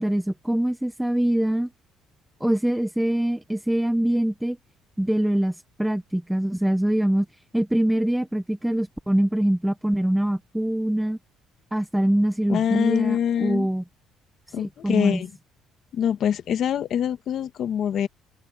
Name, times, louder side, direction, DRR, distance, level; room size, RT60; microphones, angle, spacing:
voice 1, 0.0-1.7 2.4-4.6 5.0-7.3 7.5-11.2 11.7-13.8 14.6-15.2, right 1 dB, 5° right, 0.7 m, -24 dB
voice 2, 12.5-13.7 14.5-15.3 15.9-18.1, left 9 dB, 45° left, 1.5 m, -24 dB
cardioid pair, 160°, 0 cm